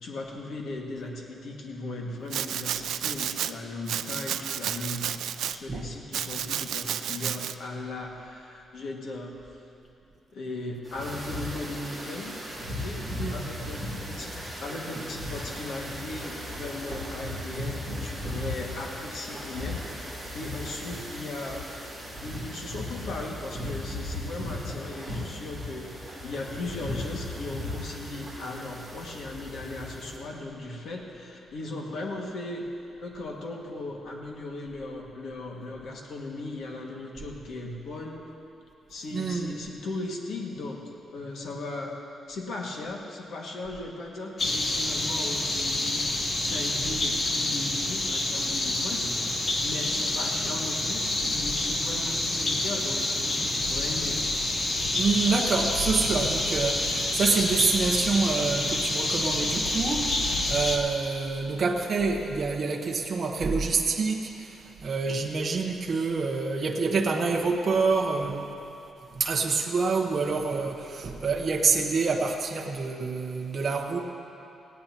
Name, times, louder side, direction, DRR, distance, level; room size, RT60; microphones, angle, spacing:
voice 1, 0.0-9.4 10.3-12.3 12.7-13.0 13.3-19.9 20.3-21.6 22.2-32.6 33.0-38.2 38.9-40.8 41.1-42.0 42.3-46.1 46.4-54.2, left 2 dB, 60° left, -1 dB, 1.9 m, -37 dB
Domestic sounds home sounds, 2.3-3.5 3.9-5.6 6.1-7.5, right 10 dB, 80° right, 0.4 m, -31 dB
sound 1, 10.8-30.2, left 1 dB, ahead, 3.0 m, -37 dB
voice 2, 13.2-13.5 39.1-39.5 46.8-46.9 54.9-68.5 69.1-74.0, right 4 dB, 35° right, 0 dB, 1.0 m, -27 dB
sound 2, 44.4-60.8, left 2 dB, 30° left, 1.1 m, -28 dB
19.0 x 17.0 x 2.9 m, 2.8 s
wide cardioid pair, 175°, 0 cm